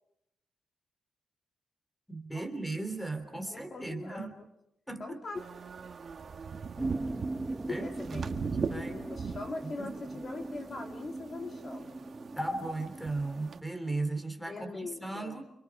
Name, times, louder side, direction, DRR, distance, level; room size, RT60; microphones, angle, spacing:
voice 1, 2.1-4.4 4.9-5.2 7.7-9.1 9.6-10.2 12.3-15.5, right 2 dB, 5° left, 8 dB, 3.2 m, -37 dB
voice 2, 3.5-4.4 5.0-5.4 7.8-8.3 8.6-12.0 14.5-15.4, left 3 dB, 35° left, 4 dB, 2.8 m, -42 dB
sound 1, 5.4-13.6, right 5 dB, 40° right, 1.7 m, -41 dB
sound 2, 6.8-13.3, right 2 dB, 15° right, 0.8 m, -40 dB
30.0 x 27.0 x 4.9 m, 0.82 s
wide cardioid pair, 140°, 0 cm